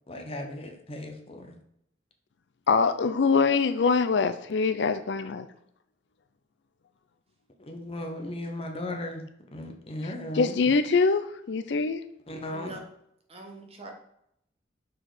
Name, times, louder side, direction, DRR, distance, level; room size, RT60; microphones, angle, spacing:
voice 1, 0.1-1.6 7.7-10.6 12.3-12.7, left 1 dB, 30° left, 4 dB, 1.0 m, -36 dB
voice 2, 2.7-5.5 10.3-12.0, left 4 dB, 65° left, 11 dB, 0.5 m, -24 dB
voice 3, 12.5-12.8 13.3-13.9, right 2 dB, 35° right, 1 dB, 1.4 m, -42 dB
6.0 x 4.7 x 4.9 m, 0.74 s
head